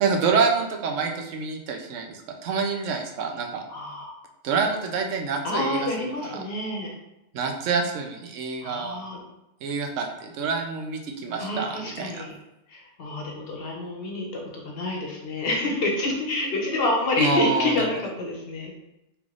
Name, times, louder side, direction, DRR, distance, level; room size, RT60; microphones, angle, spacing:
voice 1, 0.0-3.6 4.4-6.4 7.3-9.0 9.6-12.3 17.2-17.9, right 5 dB, 80° right, 3 dB, 0.9 m, -27 dB
voice 2, 3.7-4.2 5.4-6.9 8.6-9.2 11.4-12.3 12.7-18.7, left 2 dB, 55° left, -1 dB, 1.0 m, -28 dB
3.4 x 3.2 x 2.4 m, 0.93 s
omnidirectional pair, 1.3 m